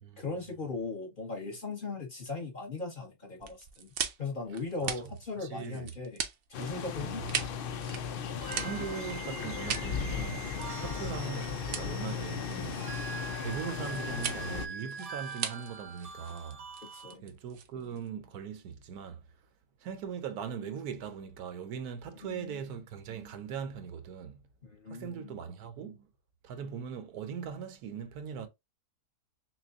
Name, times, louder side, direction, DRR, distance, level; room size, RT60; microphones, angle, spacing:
voice 1, 0.2-3.9 4.2-6.2 6.5-7.2 10.9-11.1 16.8-17.3 22.2-22.7 24.6-25.3, left 3 dB, 35° left, 1.3 m, -38 dB
sound 1, 3.4-18.1, right 8 dB, 65° right, 0.8 m, -40 dB
voice 2, 5.4-5.9 7.0-7.2 8.6-10.5 10.8-13.0 13.4-16.6 17.2-19.2 19.8-24.4 24.9-26.1 26.4-28.5, right 7 dB, 80° right, 1.2 m, -40 dB
sound 2, 6.5-14.7, left 7 dB, 85° left, 0.4 m, -36 dB
sound 3, 8.4-17.1, right 5 dB, 35° right, 0.7 m, -43 dB
6.0 x 2.3 x 2.5 m
omnidirectional pair, 1.6 m